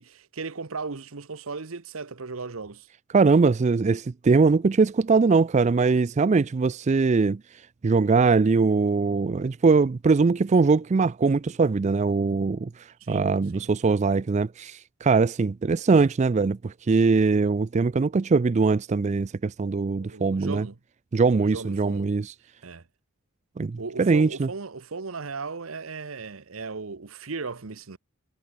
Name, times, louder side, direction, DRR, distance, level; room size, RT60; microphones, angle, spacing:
voice 1, 0.0-2.9 13.0-13.3 13.5-13.7 20.0-20.8 21.4-22.1 22.6-22.8 23.8-28.0, right 4 dB, 70° right, 1.0 m, -36 dB
voice 2, 3.1-7.4 7.8-12.7 13.1-20.6 21.1-22.3 23.6-24.5, right 4 dB, 35° right, 0.4 m, -21 dB
head